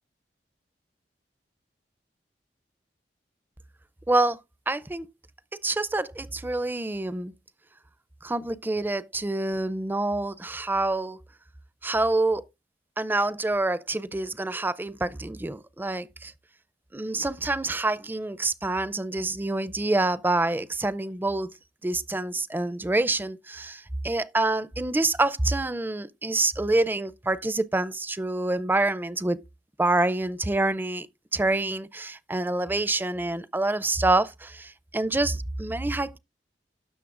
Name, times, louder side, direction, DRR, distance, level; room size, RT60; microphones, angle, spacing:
voice 1, 4.1-4.4 4.7-5.1 5.6-7.3 8.2-11.2 11.8-12.4 13.0-16.3 16.9-21.5 21.8-29.4 29.8-31.1 31.3-36.2, right 2 dB, 10° right, 0.4 m, -27 dB
17.0 x 6.5 x 2.4 m
head